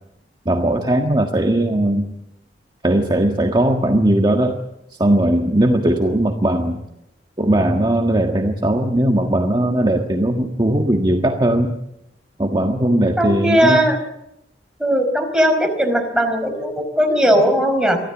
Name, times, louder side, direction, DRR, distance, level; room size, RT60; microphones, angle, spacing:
voice 1, 0.5-2.1 2.8-4.6 5.0-6.8 7.4-11.7 12.4-13.8, right 1 dB, 25° right, 3 dB, 1.6 m, -18 dB
voice 2, 13.2-14.0 14.8-18.0, equal, 5° right, 4 dB, 4.8 m, -18 dB
24.5 x 16.0 x 8.9 m, 0.84 s
head